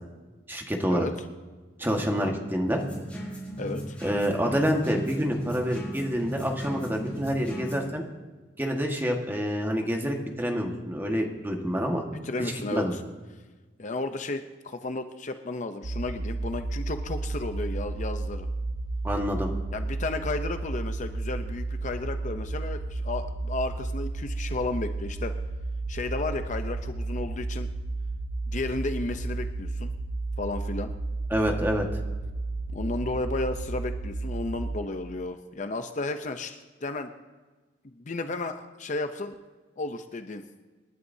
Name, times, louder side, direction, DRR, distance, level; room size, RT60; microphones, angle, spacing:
voice 1, 0.5-1.1 1.8-2.8 4.0-8.0 8.6-12.0 12.4-12.9 19.0-19.5 31.3-31.9, equal, 10° right, 1 dB, 1.6 m, -27 dB
sound 1, 2.7-7.9, right 1 dB, 5° left, 4.0 m, -37 dB
voice 2, 3.6-4.0 12.2-13.0 13.8-18.5 19.7-25.4 25.9-27.7 28.5-29.9 30.4-30.9 32.7-37.1 37.9-39.3 39.8-40.4, left 2 dB, 40° left, 8 dB, 0.6 m, -33 dB
sound 2, 15.8-34.8, right 2 dB, 70° right, 0.7 m, -32 dB
27.0 x 11.0 x 2.7 m, 1.3 s
head